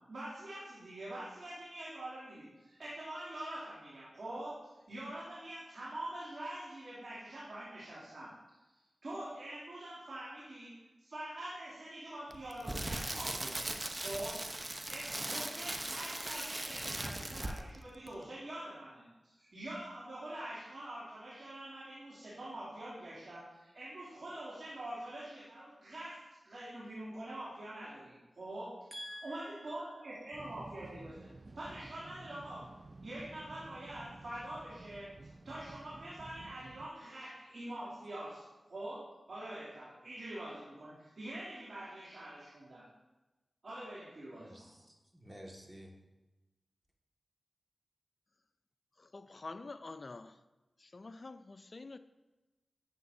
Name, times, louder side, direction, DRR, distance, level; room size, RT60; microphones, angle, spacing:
voice 1, 0.1-4.6 4.9-8.6 9.0-13.7 14.0-19.0 19.3-28.9 29.2-31.3 31.6-32.7 33.0-42.8 43.6-44.7, right 1 dB, 65° right, 2.7 m, -45 dB
Crackle, 12.3-17.8 18.1-18.2, right 1 dB, 30° right, 0.8 m, -39 dB
voice 2, 28.9-30.0 44.4-45.9, equal, 15° right, 1.8 m, -50 dB
sound 1, 30.3-36.9, right 2 dB, 50° right, 0.4 m, -52 dB
voice 3, 49.0-50.3 50.8-52.0, left 3 dB, 55° left, 0.4 m, -47 dB
11.5 x 7.7 x 2.7 m
cardioid pair, 40°, 0 cm